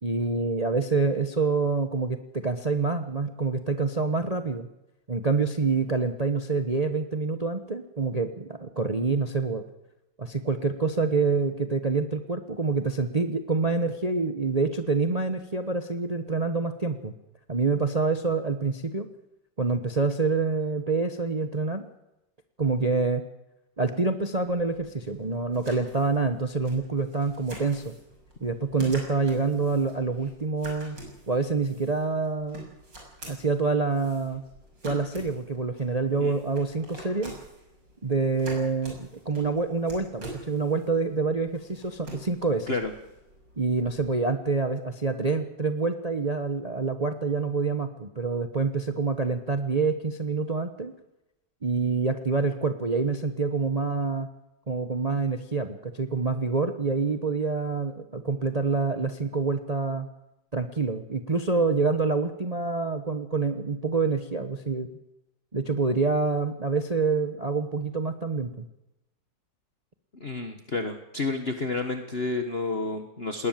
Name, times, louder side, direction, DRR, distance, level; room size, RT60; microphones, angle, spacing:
voice 1, 0.0-4.7 5.1-9.6 10.2-17.1 17.5-19.1 19.6-21.8 22.6-23.2 23.8-27.9 28.4-31.0 31.3-32.6 33.3-34.4 34.8-37.3 38.0-42.7 43.6-50.9 51.6-54.3 54.7-60.1 60.5-64.9 65.5-68.7, right 4 dB, 25° right, 9 dB, 1.0 m, -27 dB
sound 1, 24.5-44.1, right 1 dB, 80° right, 6.9 m, -46 dB
voice 2, 70.2-73.5, left 3 dB, 35° left, 6 dB, 1.6 m, -30 dB
20.5 x 18.5 x 7.5 m, 0.90 s
omnidirectional pair, 2.0 m